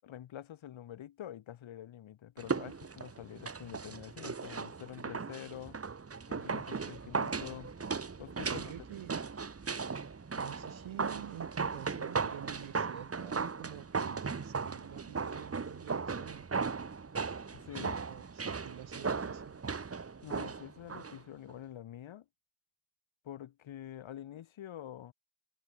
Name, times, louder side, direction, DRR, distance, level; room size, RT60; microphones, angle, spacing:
voice 1, 0.0-5.8 6.3-7.7 8.2-8.7 17.5-18.0 20.2-22.2 23.2-25.1, left 11 dB, 85° left, 6.2 m, -46 dB
sound 1, 2.4-21.2 21.5-21.6, right 5 dB, 30° right, 4.7 m, -37 dB
voice 2, 8.5-9.3 10.4-16.5 18.0-19.6, right 12 dB, 90° right, 5.6 m, -48 dB
wide cardioid pair, 135°, 46 cm